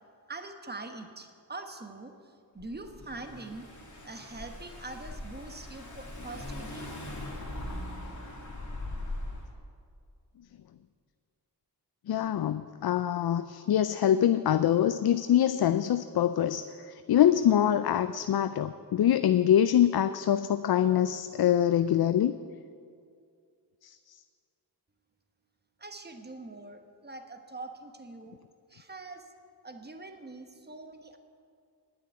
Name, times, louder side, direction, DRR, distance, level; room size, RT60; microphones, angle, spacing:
voice 1, 0.3-3.7 4.0-7.2 25.8-28.4 28.7-29.3 29.6-31.2, right 3 dB, 25° right, 6 dB, 1.2 m, -44 dB
Car / Engine, 2.6-9.5, left 1 dB, 45° left, 2.4 m, -40 dB
voice 2, 12.1-22.3 23.8-24.2, left 10 dB, 65° left, 12 dB, 0.5 m, -25 dB
9.8 x 8.5 x 9.4 m, 2.3 s
cardioid pair, 60°, 41 cm